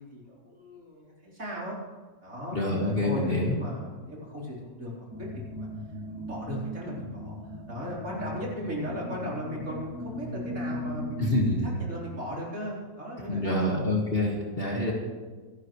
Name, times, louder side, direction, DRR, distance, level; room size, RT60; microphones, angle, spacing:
voice 1, 0.0-1.8 2.2-5.7 6.1-13.9, equal, 45° right, -5 dB, 4.3 m, -37 dB
voice 2, 2.5-3.6 11.2-11.7 13.3-14.9, left 1 dB, 30° left, -2 dB, 2.1 m, -26 dB
sound 1, 5.1-11.8, equal, 10° right, 1.6 m, -38 dB
25.5 x 11.5 x 3.2 m, 1.4 s
omnidirectional pair, 2.0 m